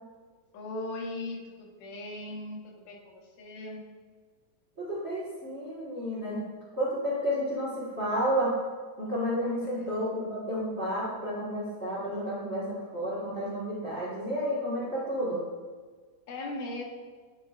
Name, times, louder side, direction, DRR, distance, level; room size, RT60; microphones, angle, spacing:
voice 1, 0.5-3.8 9.6-10.0 16.3-16.8, left 2 dB, 65° left, -1 dB, 2.0 m, -39 dB
voice 2, 4.8-6.4 6.8-8.5 9.0-15.4, equal, 70° right, -8 dB, 0.6 m, -31 dB
9.8 x 5.5 x 2.4 m, 1.4 s
omnidirectional pair, 4.0 m